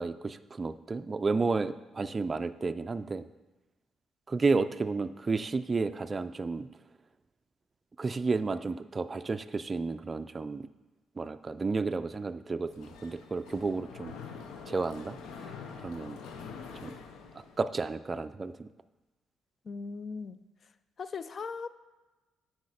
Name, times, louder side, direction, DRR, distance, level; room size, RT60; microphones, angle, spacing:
voice 1, 0.0-3.3 4.3-6.7 8.0-10.7 11.2-14.1 14.7-15.5 15.8-16.2 16.8-17.0 17.3-18.7, right 4 dB, 30° right, 10 dB, 0.3 m, -32 dB
Mechanisms, 12.7-17.9, left 5 dB, 90° left, 0.7 m, -45 dB
voice 2, 19.7-20.4 21.0-21.7, left 5 dB, 45° left, 14 dB, 0.4 m, -38 dB
8.2 x 4.7 x 5.0 m, 1.2 s
cardioid pair, 90°, 0 cm